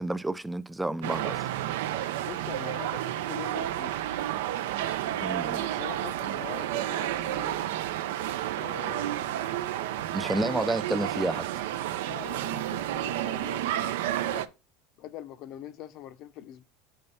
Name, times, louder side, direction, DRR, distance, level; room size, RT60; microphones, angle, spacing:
voice 1, 0.0-1.5 5.2-5.6 10.1-11.5, right 1 dB, 5° right, 0.3 m, -30 dB
sound 1, 1.0-14.5, right 12 dB, 85° right, 0.5 m, -31 dB
voice 2, 2.2-4.0 5.6-7.6 8.4-9.4 10.3-10.7 12.1-14.4 15.0-16.6, left 12 dB, 50° left, 0.6 m, -43 dB
5.5 x 3.3 x 5.4 m
supercardioid pair, 140°, 0 cm